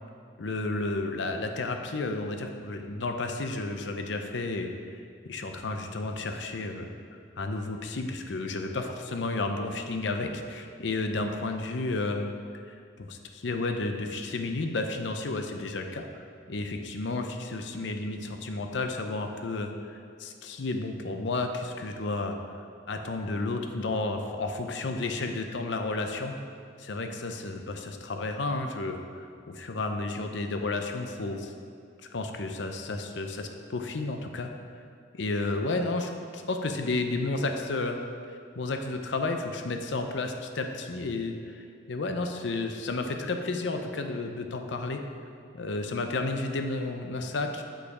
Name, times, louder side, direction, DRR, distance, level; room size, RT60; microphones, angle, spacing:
voice 1, 0.4-5.0 5.3-6.9 7.4-12.3 12.7-22.4 22.9-26.4 26.8-31.5 32.1-34.5 35.1-38.0 38.6-45.0 45.5-47.6, left 2 dB, 70° left, 5 dB, 0.6 m, -32 dB
6.5 x 5.7 x 4.8 m, 2.3 s
head